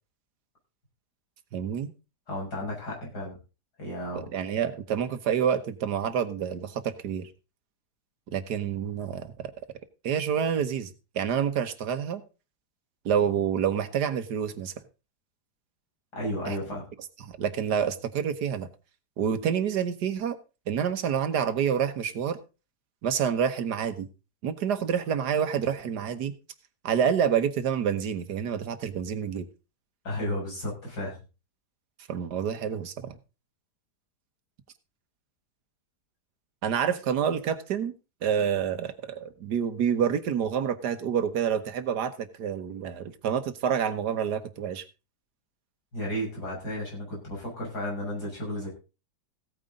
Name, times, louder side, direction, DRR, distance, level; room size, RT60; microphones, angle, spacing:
voice 1, 1.5-1.9 4.1-7.3 8.3-9.5 10.0-10.9 11.1-12.2 13.0-14.7 16.5-16.6 17.2-18.7 19.2-20.4 20.7-22.4 23.0-24.1 24.4-26.3 26.8-29.5 32.1-33.2 36.6-37.9 38.2-44.8, right 8 dB, 85° right, 11 dB, 1.7 m, -28 dB
voice 2, 2.3-3.4 3.8-4.3 16.1-16.9 30.0-31.2 45.9-48.7, equal, 80° left, -3 dB, 6.8 m, -33 dB
16.0 x 9.2 x 3.8 m, 0.31 s
omnidirectional pair, 1.7 m